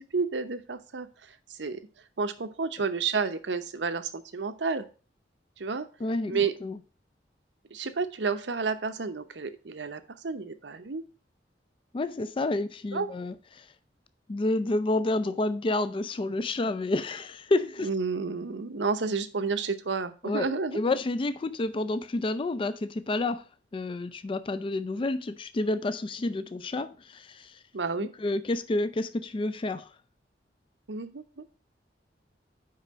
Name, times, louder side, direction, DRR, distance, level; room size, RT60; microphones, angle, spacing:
voice 1, 0.1-1.1 1.5-1.8 2.2-4.8 5.6-5.9 6.3-6.5 7.7-11.0 12.9-13.1 17.8-20.8 27.7-28.1 30.9-31.4, right 4 dB, 85° right, 0.8 m, -30 dB
voice 2, 6.0-6.8 11.9-13.7 14.3-17.9 20.2-23.5 23.7-27.6 28.0-29.9, left 2 dB, 30° left, 0.4 m, -29 dB
5.7 x 4.9 x 6.2 m
head